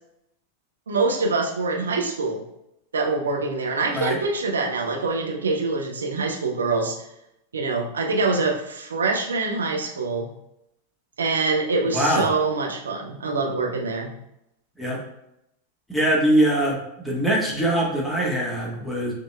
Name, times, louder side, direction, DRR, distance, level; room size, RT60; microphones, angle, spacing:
voice 1, 0.9-2.4 2.9-7.0 7.5-10.3 11.2-14.1, right 3 dB, 70° right, 1 dB, 0.7 m, -25 dB
voice 2, 11.8-12.3 14.8-15.0 15.9-19.1, right 1 dB, 5° left, -4 dB, 1.4 m, -22 dB
6.6 x 3.0 x 2.2 m, 0.82 s
figure-of-eight pair, 90°, 0 cm